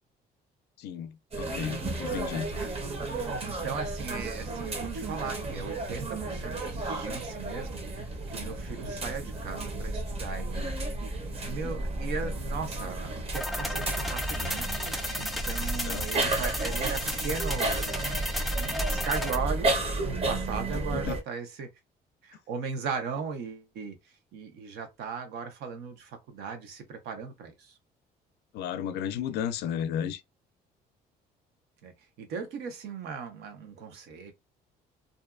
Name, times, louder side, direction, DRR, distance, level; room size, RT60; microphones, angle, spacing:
voice 1, 0.8-2.5 15.9-16.3 20.9-21.2 28.5-30.2, left 9 dB, 75° left, 0.4 m, -33 dB
sound 1, 1.3-21.2, right 2 dB, 35° right, 0.8 m, -32 dB
voice 2, 3.4-7.8 8.3-11.1 11.4-14.7 15.2-17.9 18.6-21.7 22.2-24.0 24.3-27.7 31.8-31.9 32.2-34.3, right 5 dB, 75° right, 0.9 m, -37 dB
sound 2, 13.3-19.4, left 1 dB, ahead, 0.4 m, -34 dB
2.6 x 2.3 x 2.4 m
cardioid pair, 110°, 17 cm